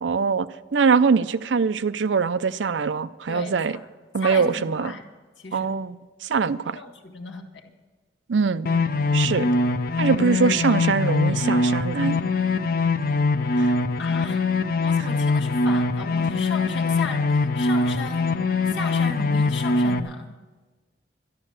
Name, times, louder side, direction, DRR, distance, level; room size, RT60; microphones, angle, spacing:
voice 1, 0.0-3.8 4.1-4.9 5.5-6.8 8.3-8.7 9.1-9.5 10.0-12.2 13.6-13.7, right 5 dB, 85° right, 15 dB, 0.5 m, -23 dB
voice 2, 3.3-3.9 4.2-5.0 5.4-5.7 6.7-7.4 12.8-12.9 13.6-14.4 14.8-18.3 18.7-20.3, left 3 dB, 85° left, 1 dB, 1.7 m, -35 dB
sound 1, 8.7-20.0, left 3 dB, 50° left, 0.5 m, -23 dB
12.0 x 12.0 x 6.5 m, 1.3 s
head